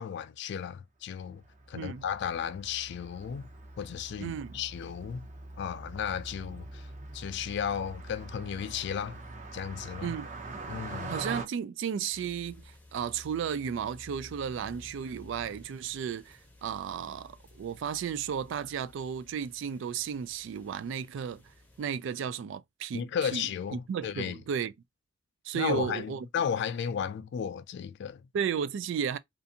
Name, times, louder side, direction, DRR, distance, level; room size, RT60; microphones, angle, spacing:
voice 1, 0.0-1.4 1.7-3.5 3.8-5.3 5.6-6.9 7.1-9.2 9.5-10.1 10.7-11.2 22.9-24.4 25.5-28.2, left 8 dB, 60° left, 0.3 m, -34 dB
Car passing by, 1.3-11.4, right 2 dB, 40° right, 0.7 m, -43 dB
voice 2, 4.2-4.6 10.0-10.3 11.1-21.4 21.8-24.7 25.4-26.3 28.3-29.2, right 7 dB, 65° right, 0.3 m, -34 dB
sound 1, 12.1-21.8, left 1 dB, 10° left, 0.6 m, -54 dB
2.5 x 2.5 x 2.6 m
head